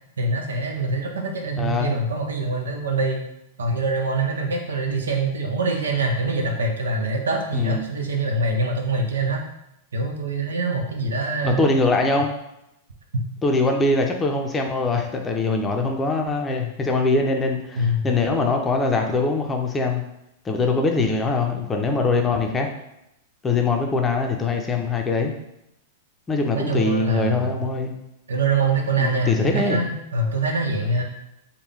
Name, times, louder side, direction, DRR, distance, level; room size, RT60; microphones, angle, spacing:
voice 1, 0.2-3.2 3.6-9.4 9.9-11.6 17.8-18.1 26.5-27.5 28.3-31.0, right 2 dB, 80° right, 2 dB, 0.6 m, -24 dB
voice 2, 1.6-1.9 7.5-7.8 11.4-12.3 13.4-20.0 20.4-22.7 23.4-25.3 26.3-27.9 29.0-29.8, left 3 dB, 20° left, 2 dB, 0.6 m, -22 dB
3.5 x 2.2 x 3.3 m, 0.84 s
hypercardioid pair, 105°, 0 cm